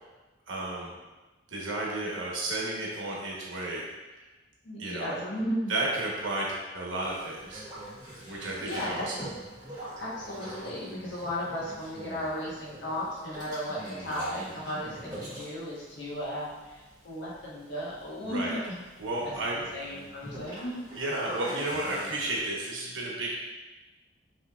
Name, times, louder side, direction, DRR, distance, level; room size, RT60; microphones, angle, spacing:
voice 1, 0.5-0.9 1.5-3.8 4.1-4.2 4.8-5.2 5.7-7.6 8.3-9.1 18.2-18.5 19.0-19.6 20.9-23.3, right 2 dB, 85° right, -3 dB, 1.1 m, -32 dB
voice 2, 4.6-5.7 8.2-9.0 10.0-18.8 19.2-20.8, equal, 65° left, -6 dB, 1.2 m, -35 dB
Boat Water vehicle, 7.0-22.4, right 1 dB, 20° right, 1.3 m, -44 dB
5.5 x 3.3 x 2.4 m, 1.2 s
head